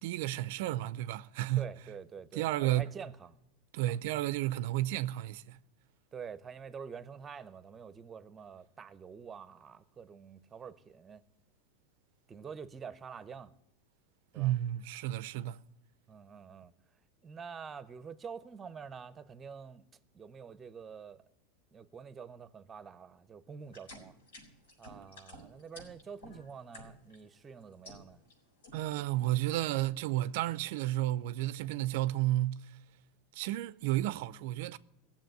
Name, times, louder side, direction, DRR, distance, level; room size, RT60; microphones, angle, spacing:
voice 1, 0.0-1.7 2.3-2.9 3.7-5.6 14.3-15.6 28.7-32.7 33.3-34.8, right 15 dB, 65° right, 0.5 m, -32 dB
voice 2, 1.6-3.4 3.8-4.0 6.1-11.2 12.3-13.5 14.3-14.5 16.1-16.7 17.2-19.9 20.1-21.2 21.7-24.2 24.8-28.2, right 6 dB, 25° right, 0.7 m, -47 dB
sound 1, 23.6-27.2 27.6-28.3 28.6-29.0, equal, 85° left, 4.5 m, -51 dB
16.0 x 7.3 x 9.2 m
hypercardioid pair, 110°, 0 cm